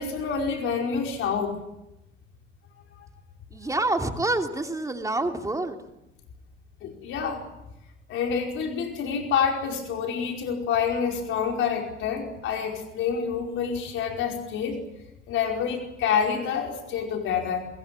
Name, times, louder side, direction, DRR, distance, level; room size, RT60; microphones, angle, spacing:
voice 1, 0.0-1.6 6.8-7.5 8.1-14.8 15.3-17.7, left 6 dB, 85° left, 3 dB, 5.0 m, -27 dB
voice 2, 3.5-5.8, right 2 dB, 15° right, 4 dB, 3.0 m, -27 dB
23.5 x 21.5 x 8.6 m, 0.90 s
cardioid pair, 90°, 20 cm